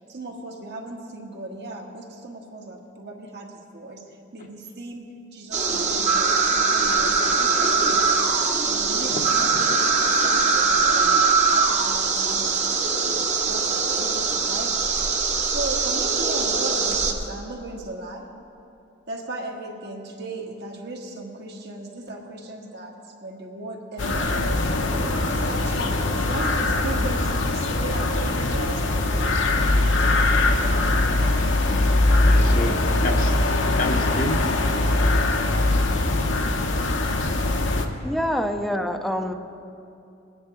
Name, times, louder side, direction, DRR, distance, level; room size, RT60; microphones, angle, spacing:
voice 1, 0.0-8.1 8.6-11.2 11.5-12.7 13.5-14.9 15.4-18.3 19.1-31.3, right 2 dB, 60° right, 0 dB, 1.5 m, -37 dB
sound 1, 5.5-17.1, right 4 dB, 40° right, 1.0 m, -22 dB
voice 2, 9.0-9.9 24.8-25.0 32.2-32.7 33.0-33.4 33.8-34.4, left 1 dB, 45° left, 1 dB, 0.8 m, -30 dB
sound 2, 24.0-37.9, left 2 dB, 70° left, 1.0 m, -21 dB
voice 3, 38.0-39.3, equal, ahead, 7 dB, 0.5 m, -25 dB
20.5 x 9.9 x 3.7 m, 2.7 s
head